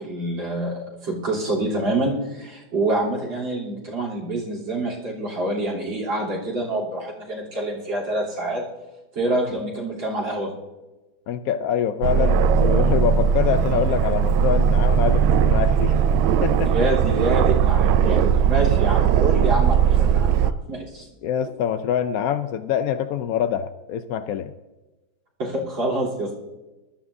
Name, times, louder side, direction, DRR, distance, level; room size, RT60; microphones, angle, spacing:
voice 1, 0.0-8.6 9.2-10.5 16.6-20.3 20.7-21.1 25.4-26.3, right 2 dB, 70° right, -3 dB, 4.1 m, -26 dB
voice 2, 9.3-9.6 11.3-16.0 16.4-16.7 21.2-24.5, left 9 dB, 80° left, 10 dB, 0.8 m, -25 dB
Aircraft, 12.0-20.5, right 7 dB, 90° right, 1.4 m, -18 dB
20.0 x 13.0 x 2.7 m, 1.1 s
omnidirectional pair, 2.1 m